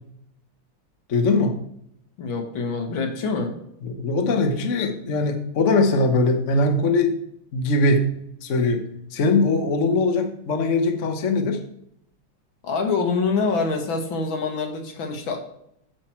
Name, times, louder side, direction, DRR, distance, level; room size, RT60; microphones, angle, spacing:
voice 1, 1.1-1.6 3.8-7.2 7.5-8.1 8.4-8.8 9.1-11.6, left 2 dB, 45° left, 5 dB, 1.1 m, -21 dB
voice 2, 2.2-3.5 12.6-15.4, left 4 dB, 65° left, 3 dB, 2.1 m, -25 dB
9.6 x 6.1 x 4.4 m, 0.75 s
omnidirectional pair, 2.4 m